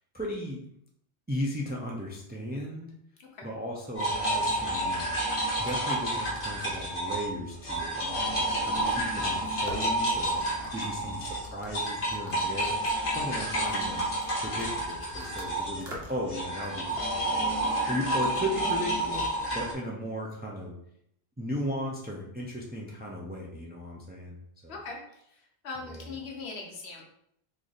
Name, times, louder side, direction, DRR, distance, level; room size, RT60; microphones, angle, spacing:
voice 1, 0.1-0.6 1.3-2.9 3.4-5.2 5.6-10.5 10.7-12.7 13.1-14.0 14.4-17.5 17.9-19.2 19.5-20.7 21.4-24.4 24.6-24.7 25.9-26.0, equal, 15° right, -2 dB, 0.3 m, -36 dB
sound 1, 4.0-7.3 7.6-19.7, right 1 dB, 60° left, 1.3 m, -30 dB
sound 2, 9.3-15.5 15.8-16.3 16.6-17.6, right 1 dB, 75° right, 1.1 m, -45 dB
voice 2, 24.7-27.0, left 4 dB, 85° left, 0 dB, 1.1 m, -41 dB
3.2 x 2.5 x 3.9 m, 0.73 s
omnidirectional pair, 1.1 m